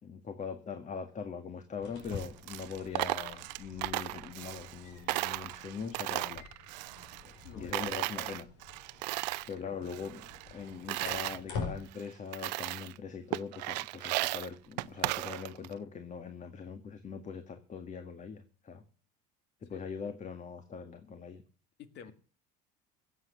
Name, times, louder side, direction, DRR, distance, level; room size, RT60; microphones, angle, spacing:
voice 1, 0.0-6.5 7.2-8.5 9.5-18.8 19.6-21.4, left 6 dB, 35° left, 1.8 m, -42 dB
sound 1, 1.7-11.8, left 5 dB, 70° left, 5.0 m, -46 dB
Coin (dropping), 2.0-4.8 5.1-7.5 7.7-9.5 9.9-11.4 11.9-12.0 12.3-13.0 13.3-15.7, right 21 dB, 80° right, 0.6 m, -36 dB
voice 2, 7.4-8.4 9.6-9.7 19.7-19.8 21.8-22.1, left 8 dB, 55° left, 2.0 m, -50 dB
16.0 x 8.0 x 7.0 m
hypercardioid pair, 80°, 21 cm